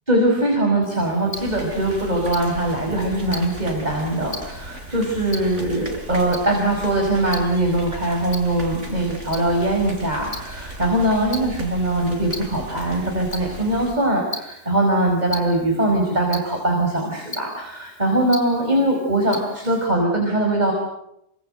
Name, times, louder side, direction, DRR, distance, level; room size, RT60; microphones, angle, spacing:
voice 1, 0.1-20.7, right 1 dB, 25° right, 1 dB, 5.3 m, -21 dB
Tick-tock, 0.8-19.9, left 2 dB, 40° left, 5.2 m, -41 dB
sound 1, 1.3-13.9, right 1 dB, 50° right, 5.0 m, -37 dB
27.5 x 25.0 x 7.9 m, 0.81 s
omnidirectional pair, 1.6 m